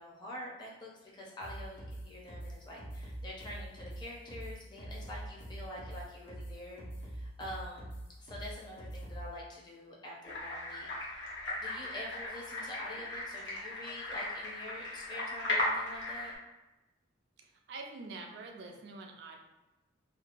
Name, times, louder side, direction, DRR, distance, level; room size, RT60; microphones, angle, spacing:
voice 1, 0.0-7.9 8.2-16.3, left 1 dB, 25° left, -4 dB, 0.5 m, -46 dB
sound 1, 1.4-9.3, right 1 dB, 65° left, 1.2 m, -43 dB
sound 2, 10.2-16.3, left 1 dB, 80° left, 0.9 m, -37 dB
voice 2, 17.7-19.4, right 3 dB, 65° right, 2 dB, 0.3 m, -45 dB
2.8 x 2.2 x 2.5 m, 1.1 s
head